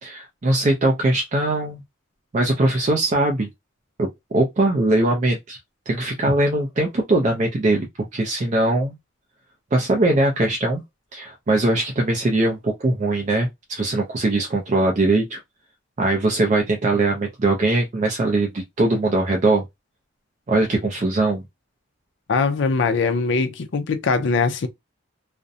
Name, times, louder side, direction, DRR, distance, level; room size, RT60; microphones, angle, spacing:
voice 1, 0.0-1.8 2.3-3.5 4.0-5.6 5.9-7.9 8.1-8.9 9.7-10.8 11.1-15.4 16.0-19.6 20.5-21.4, right 2 dB, 35° right, 0.4 m, -21 dB
voice 2, 22.3-24.7, left 4 dB, 60° left, 0.4 m, -21 dB
2.5 x 2.0 x 2.6 m
head